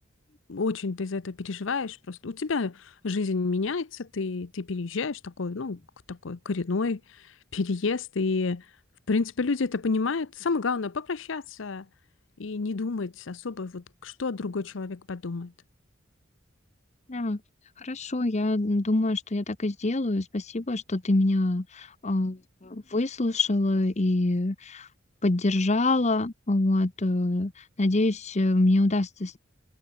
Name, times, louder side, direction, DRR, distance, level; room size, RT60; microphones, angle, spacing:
voice 1, 0.5-5.8 6.1-8.7 9.1-11.9 12.4-15.5, left 4 dB, 70° left, 0.7 m, -30 dB
voice 2, 17.8-24.9 25.2-27.5 27.8-29.4, left 2 dB, 35° left, 0.9 m, -25 dB
head